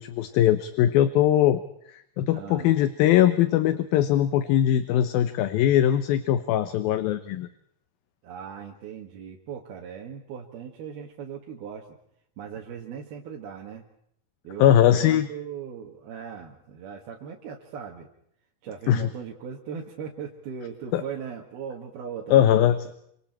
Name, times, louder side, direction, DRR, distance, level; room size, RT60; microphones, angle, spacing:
voice 1, 0.0-1.6 1.9-7.5 14.6-15.3 18.9-19.1 20.9-21.0 22.3-22.9, left 11 dB, 75° left, 12 dB, 2.7 m, -21 dB
voice 2, 2.3-2.7 8.2-12.0 12.4-13.8 14.4-18.1 18.6-22.8, right 7 dB, 75° right, -2 dB, 3.8 m, -38 dB
27.5 x 26.0 x 4.4 m, 0.71 s
omnidirectional pair, 4.4 m